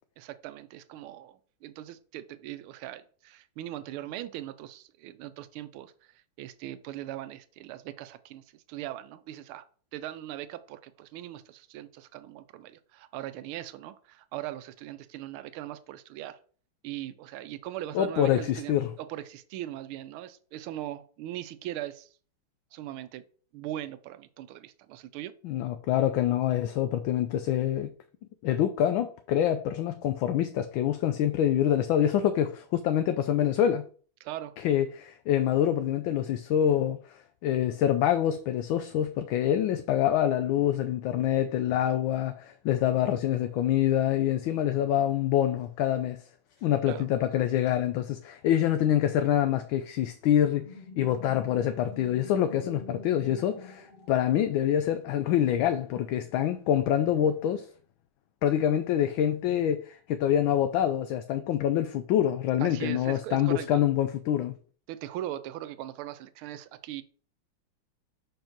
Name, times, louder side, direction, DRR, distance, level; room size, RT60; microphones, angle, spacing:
voice 1, 0.2-9.7 9.9-16.4 16.8-22.1 22.7-23.2 23.5-25.3 34.2-34.5 46.9-47.1 62.6-63.8 64.9-67.0, right 13 dB, 80° right, 1.5 m, -40 dB
voice 2, 17.9-18.9 25.4-27.9 28.4-33.9 34.6-37.0 37.4-46.2 46.6-57.7 58.4-64.5, left 10 dB, 75° left, 1.3 m, -26 dB
sound 1, 50.6-54.9, left 2 dB, 30° left, 1.2 m, -47 dB
5.3 x 5.2 x 5.8 m
omnidirectional pair, 2.4 m